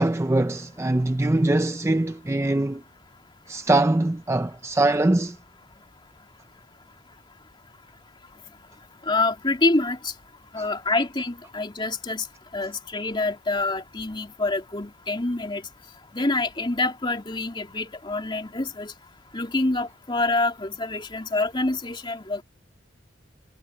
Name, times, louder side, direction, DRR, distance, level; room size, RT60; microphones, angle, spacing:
voice 1, 0.0-2.8 3.5-5.4, right 2 dB, 15° right, 0.5 m, -22 dB
voice 2, 9.1-10.1 10.5-12.3 12.5-15.6 16.1-18.9 19.3-22.4, left 2 dB, 25° left, 2.8 m, -26 dB
head